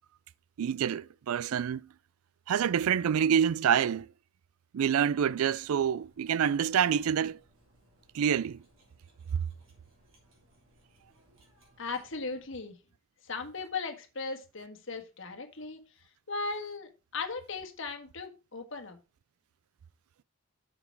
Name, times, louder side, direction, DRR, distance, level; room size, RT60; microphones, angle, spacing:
voice 1, 0.6-1.9 2.5-4.1 4.7-7.4 8.1-8.6, right 8 dB, 85° right, 0.4 m, -27 dB
Cutlery silverware, 5.0-12.8, right 1 dB, 65° right, 3.6 m, -65 dB
voice 2, 11.8-12.8 13.2-15.8 16.3-19.0, left 4 dB, 60° left, 1.6 m, -37 dB
6.9 x 6.9 x 4.6 m
head